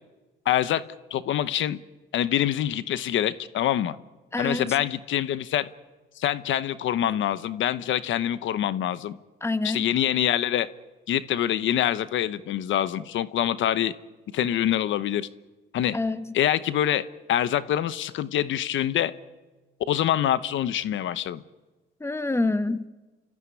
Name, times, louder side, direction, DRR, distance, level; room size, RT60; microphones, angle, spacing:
voice 1, 0.5-0.8 1.1-1.8 2.1-4.0 4.4-5.7 6.2-9.2 9.6-10.7 11.1-13.9 14.3-15.3 15.7-16.0 16.3-17.0 17.3-19.1 19.9-21.4, left 11 dB, 75° left, 0.9 m, -25 dB
voice 2, 4.3-4.7 9.4-9.9 15.9-16.3 22.0-22.9, left 2 dB, 15° left, 1.4 m, -27 dB
29.5 x 14.5 x 9.8 m
cardioid pair, 90°, 20 cm